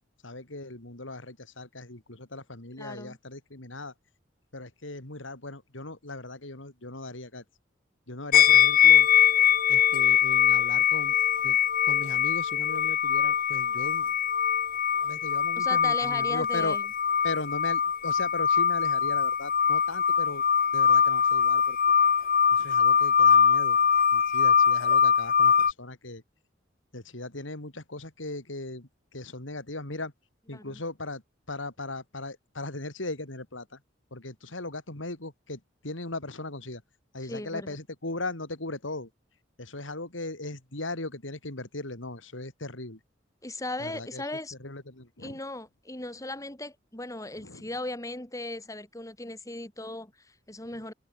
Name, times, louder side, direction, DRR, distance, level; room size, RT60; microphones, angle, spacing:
voice 1, 0.2-3.9 4.5-7.4 8.1-9.1 9.7-11.1 11.4-11.6 11.8-14.1 15.0-16.8 17.2-20.4 20.7-21.8 22.5-23.8 24.1-26.2 26.9-30.1 30.5-31.2 31.5-33.8 34.1-36.8 37.1-39.1 39.6-43.0 43.8-44.2 44.6-45.4 47.4-47.7, left 2 dB, 90° left, 4.1 m, -38 dB
voice 2, 2.8-3.2 15.6-16.9 30.5-30.8 37.2-37.8 43.4-44.5 45.2-50.9, left 2 dB, 15° left, 2.9 m, -37 dB
sound 1, 8.3-25.7, left 8 dB, 50° left, 1.5 m, -22 dB
head